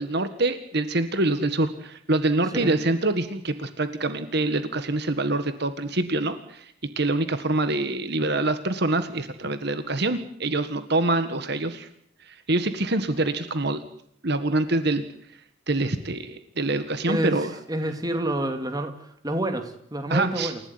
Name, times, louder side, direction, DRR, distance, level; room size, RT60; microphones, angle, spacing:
voice 1, 0.0-11.9 12.2-13.8 14.2-15.0 15.7-17.5 20.1-20.5, right 2 dB, 55° right, 10 dB, 1.8 m, -25 dB
voice 2, 17.1-17.4 17.7-20.6, right 1 dB, 20° right, 7 dB, 2.7 m, -28 dB
29.0 x 16.5 x 9.7 m, 0.67 s
head